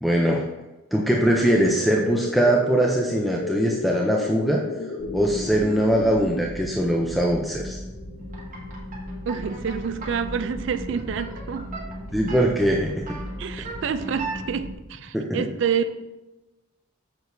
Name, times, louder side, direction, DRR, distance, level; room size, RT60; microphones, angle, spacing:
voice 1, 0.0-0.5 0.9-4.6 5.1-7.8 12.1-12.9 15.1-15.5, right 1 dB, ahead, -1 dB, 0.4 m, -21 dB
sound 1, 1.2-6.5, left 3 dB, 55° left, 0.4 m, -33 dB
sound 2, 5.0-14.7, left 1 dB, 35° left, 1.3 m, -37 dB
sound 3, 8.3-14.4, right 4 dB, 40° right, 1.5 m, -37 dB
voice 2, 9.3-11.7 13.4-15.9, right 6 dB, 65° right, 10 dB, 0.4 m, -28 dB
6.9 x 6.1 x 2.7 m, 1.1 s
head